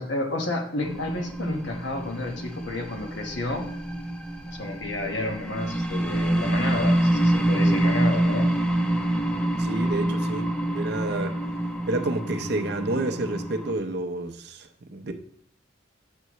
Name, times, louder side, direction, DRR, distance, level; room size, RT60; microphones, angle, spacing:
voice 1, 0.0-3.7 4.5-8.5, left 2 dB, 80° left, 1.2 m, -30 dB
sound 1, 0.8-13.7, right 1 dB, 5° left, 0.6 m, -26 dB
voice 2, 9.6-11.4 11.9-15.1, right 2 dB, 60° right, 0.7 m, -29 dB
8.1 x 6.6 x 3.1 m
head